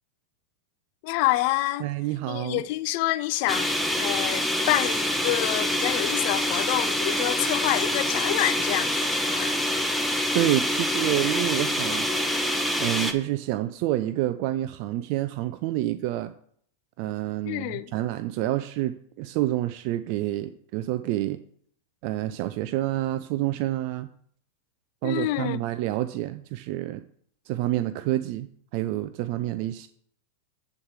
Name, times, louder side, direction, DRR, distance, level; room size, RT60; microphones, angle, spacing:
voice 1, 1.0-1.9 2.3-9.6 17.5-17.9 25.0-25.6, left 17 dB, 55° left, 0.6 m, -27 dB
voice 2, 1.8-2.6 10.3-16.3 17.0-21.4 22.0-24.1 25.0-27.0 27.5-28.5 28.7-29.9, right 15 dB, 55° right, 0.5 m, -28 dB
sound 1, 3.5-13.1, left 1 dB, ahead, 1.0 m, -26 dB
8.6 x 4.7 x 7.5 m
hypercardioid pair, 110°, 0 cm